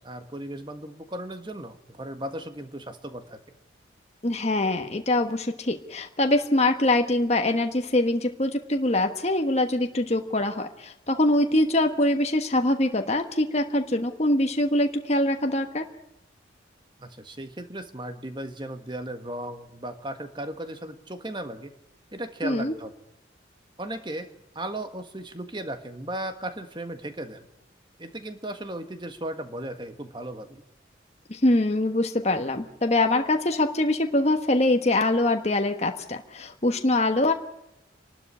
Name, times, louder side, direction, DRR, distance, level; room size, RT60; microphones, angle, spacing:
voice 1, 0.0-3.4 17.0-21.7 22.1-22.9 23.8-27.5 28.0-30.6, right 1 dB, 25° right, 8 dB, 1.6 m, -36 dB
voice 2, 4.2-15.9 22.4-22.7 31.3-37.3, left 1 dB, 35° left, 5 dB, 1.3 m, -23 dB
27.0 x 12.5 x 10.0 m, 0.85 s
head